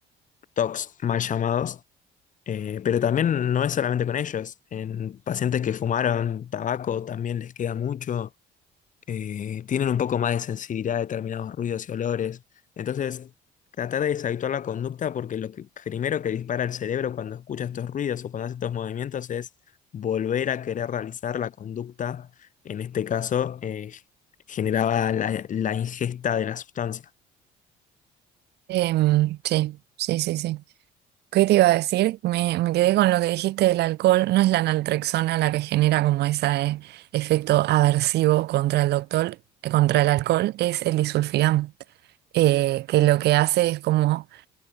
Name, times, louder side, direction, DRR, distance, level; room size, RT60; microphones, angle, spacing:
voice 1, 0.6-1.8 2.5-8.3 9.1-12.4 12.8-13.3 13.8-19.5 19.9-22.3 22.6-24.0 24.5-27.0, left 9 dB, 50° left, 6.1 m, -27 dB
voice 2, 28.7-30.6 31.3-39.4 39.6-41.7 42.3-44.2, right 16 dB, 75° right, 5.6 m, -22 dB
cardioid pair, 110°, 17 cm